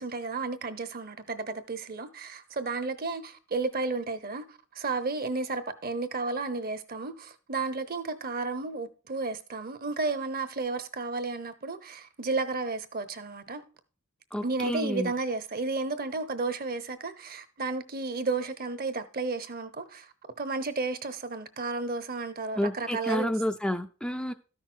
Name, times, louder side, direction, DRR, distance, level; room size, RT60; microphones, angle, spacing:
voice 1, 0.0-13.6 14.4-20.1 20.4-23.3, right 3 dB, 50° right, 0.9 m, -32 dB
voice 2, 14.3-15.1 22.6-24.3, equal, 5° left, 0.4 m, -30 dB
13.0 x 6.0 x 4.4 m
head